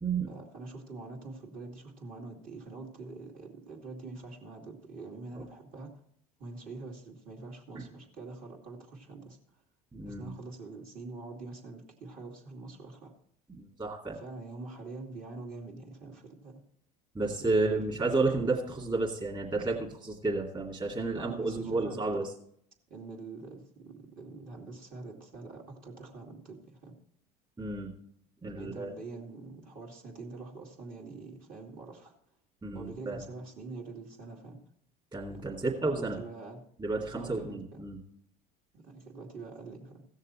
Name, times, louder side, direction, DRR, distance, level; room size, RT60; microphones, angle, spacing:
voice 1, 0.3-6.0 6.4-9.4 10.0-13.1 14.1-16.6 17.4-18.2 21.1-22.2 22.9-26.9 28.5-32.1 32.7-34.6 35.3-36.7 37.1-37.8 38.7-40.1, right 3 dB, 45° right, -1 dB, 2.7 m, -45 dB
voice 2, 9.9-10.3 13.5-14.2 17.1-22.2 27.6-27.9 28.4-28.9 32.6-33.2 35.1-36.2 36.8-38.0, right 3 dB, 20° right, -2 dB, 2.5 m, -31 dB
16.0 x 6.6 x 4.4 m, 0.67 s
hypercardioid pair, 85°, 20 cm